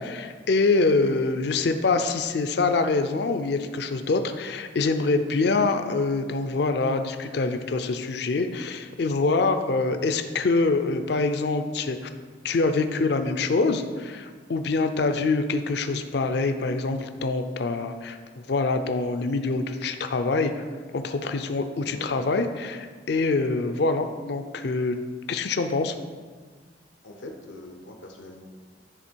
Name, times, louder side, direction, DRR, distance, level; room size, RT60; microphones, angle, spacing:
voice 1, 0.0-12.1 12.4-18.2 18.5-20.6 20.9-25.0 25.3-25.9, left 3 dB, 60° left, 8 dB, 0.5 m, -25 dB
voice 2, 21.7-22.3 27.0-28.4, left 2 dB, 90° left, 2 dB, 0.8 m, -43 dB
10.0 x 3.6 x 4.5 m, 1.5 s
head